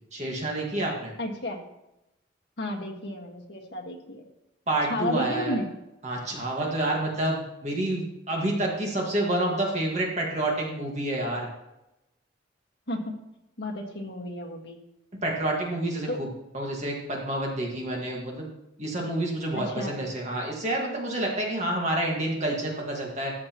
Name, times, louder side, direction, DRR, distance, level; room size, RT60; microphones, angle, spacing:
voice 1, 0.1-1.1 4.7-5.5 6.0-11.5 15.2-16.3 16.5-18.5 18.8-23.3, right 1 dB, 35° right, -1 dB, 1.7 m, -28 dB
voice 2, 1.2-1.6 2.6-4.2 4.9-5.7 12.9-13.0 13.6-14.8 16.1-16.2 19.5-20.0, left 1 dB, 60° left, 1 dB, 1.6 m, -32 dB
13.5 x 8.2 x 3.0 m, 0.91 s
head